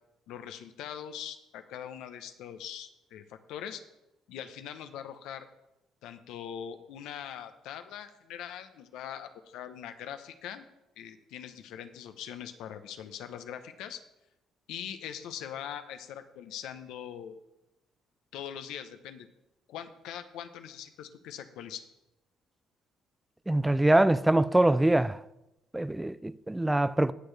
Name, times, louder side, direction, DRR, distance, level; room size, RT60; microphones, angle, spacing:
voice 1, 0.3-3.8 4.3-5.5 6.0-10.6 11.0-14.0 14.7-17.3 18.3-19.3 19.7-21.8, left 9 dB, 80° left, 0.9 m, -42 dB
voice 2, 23.5-25.2 25.7-27.1, right 1 dB, 10° right, 0.3 m, -24 dB
19.0 x 6.4 x 3.4 m
supercardioid pair, 80°, 0 cm